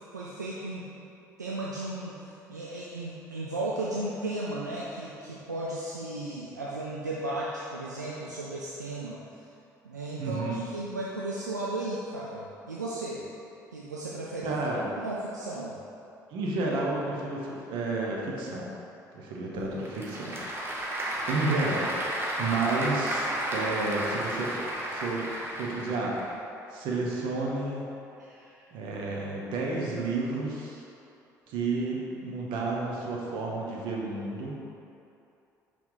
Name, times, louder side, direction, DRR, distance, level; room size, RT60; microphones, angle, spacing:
voice 1, 0.1-0.9 1.4-2.2 2.5-9.2 9.8-13.2 13.7-14.6 15.0-15.8 28.2-28.6, right 2 dB, 90° right, -5 dB, 0.4 m, -35 dB
voice 2, 10.2-10.6 14.4-14.9 16.3-18.7 19.1-20.4 20.7-21.0 21.3-24.5 24.9-26.2 26.7-27.8 28.7-30.8 31.5-34.6, right 3 dB, 60° right, -3 dB, 1.1 m, -31 dB
Applause / Crowd, 19.6-26.3, right 1 dB, 25° right, 1.2 m, -32 dB
5.7 x 3.5 x 4.9 m, 2.8 s
figure-of-eight pair, 50°, 9 cm